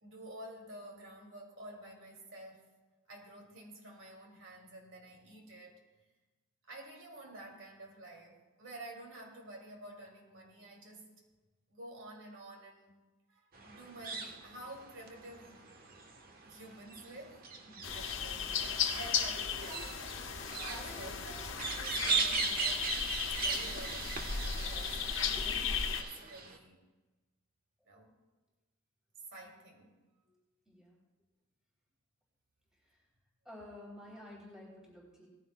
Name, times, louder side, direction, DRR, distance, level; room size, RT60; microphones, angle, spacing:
voice 1, 0.0-2.8 3.1-5.8 6.6-11.2 11.7-13.0 13.3-15.7 16.4-17.5 17.9-23.0 23.4-25.6 26.0-26.8 27.8-28.2 29.3-30.0 30.3-30.4, right 1 dB, 70° right, 0 dB, 2.7 m, -50 dB
sound 1, 13.5-26.6, right 5 dB, 50° right, 1.2 m, -39 dB
voice 2, 17.6-18.5 20.7-21.1 24.7-24.8 25.4-25.6 30.6-31.0 32.8-33.0 33.4-35.3, left 1 dB, 5° right, -5 dB, 3.3 m, -52 dB
sound 2, 17.8-26.0, left 6 dB, 70° left, 1.2 m, -36 dB
18.0 x 15.0 x 2.3 m, 1.2 s
head